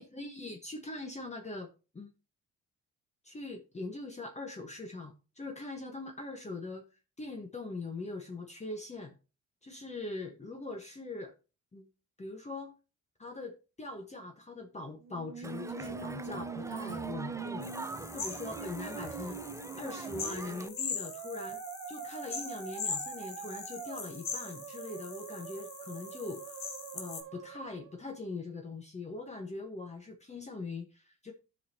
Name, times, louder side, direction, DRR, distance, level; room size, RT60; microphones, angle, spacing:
voice 1, 0.0-1.7 1.9-2.1 3.2-6.8 7.2-9.2 9.6-11.3 11.7-11.9 12.2-12.7 13.2-19.4 19.7-21.6 21.9-26.6 26.9-31.3, left 3 dB, 20° left, 3 dB, 1.2 m, -42 dB
Musical instrument, 15.0-28.0, right 7 dB, 90° right, 1.0 m, -44 dB
Crowd, 15.4-20.7, right 2 dB, 10° right, 0.5 m, -43 dB
sound 1, 17.6-27.2, left 6 dB, 65° left, 1.7 m, -42 dB
14.5 x 5.3 x 2.8 m, 0.32 s
cardioid pair, 90°, 30 cm